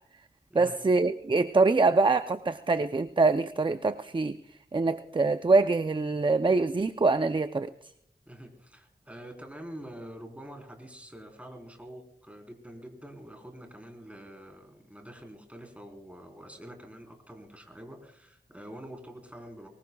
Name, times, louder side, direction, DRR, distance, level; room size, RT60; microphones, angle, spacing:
voice 1, 0.5-4.4 4.7-7.7, right 3 dB, 30° right, 10 dB, 0.5 m, -24 dB
voice 2, 8.3-19.7, equal, 10° right, 2 dB, 4.0 m, -46 dB
23.5 x 20.5 x 2.3 m, 0.69 s
wide cardioid pair, 70°, 17 cm